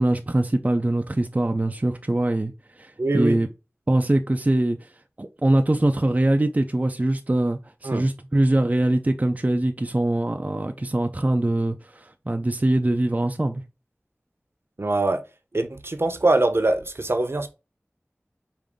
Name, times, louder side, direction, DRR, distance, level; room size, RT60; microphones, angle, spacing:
voice 1, 0.0-3.5 3.9-4.9 5.2-13.6, right 1 dB, 35° right, 0.4 m, -23 dB
voice 2, 3.0-3.4 7.8-8.1 14.8-15.2 15.5-17.5, right 2 dB, 60° right, 0.7 m, -23 dB
5.1 x 2.6 x 3.6 m
wide cardioid pair, 40°, 5 cm